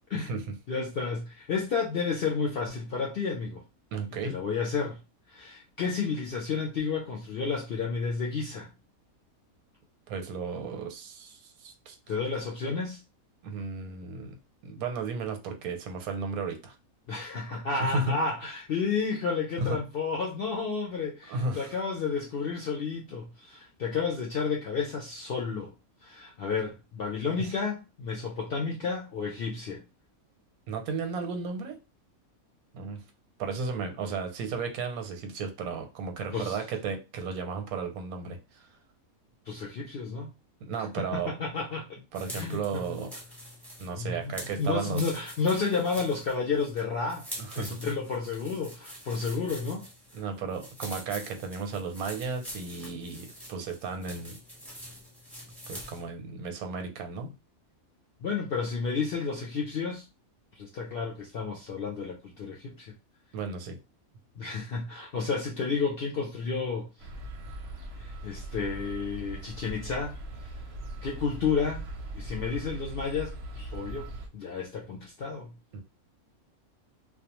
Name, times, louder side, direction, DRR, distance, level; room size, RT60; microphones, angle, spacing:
voice 1, 0.1-0.5 3.9-4.4 10.1-12.0 13.4-14.4 14.6-16.7 17.8-18.1 19.6-19.8 21.3-21.7 27.4-27.5 30.7-31.8 32.7-33.0 33.4-38.7 40.6-41.3 42.1-43.1 43.8-45.0 47.4-47.8 50.1-54.4 55.7-57.3 63.3-63.8 75.7-75.8, right 4 dB, 85° right, 1.1 m, -34 dB
voice 2, 0.7-3.6 4.2-5.0 5.3-8.7 12.1-13.0 17.1-25.7 26.0-29.8 36.3-36.6 39.5-40.3 40.8-40.9 41.4-41.8 42.4-42.8 44.0-47.2 47.6-49.8 58.2-60.0 60.6-62.9 64.4-66.9 68.0-70.1 71.0-71.9 72.1-75.5, left 5 dB, 70° left, 0.5 m, -31 dB
sound 1, 42.1-56.1, equal, ahead, 0.7 m, -45 dB
sound 2, 67.0-74.3, right 1 dB, 60° right, 0.7 m, -40 dB
2.3 x 2.3 x 2.8 m
omnidirectional pair, 1.5 m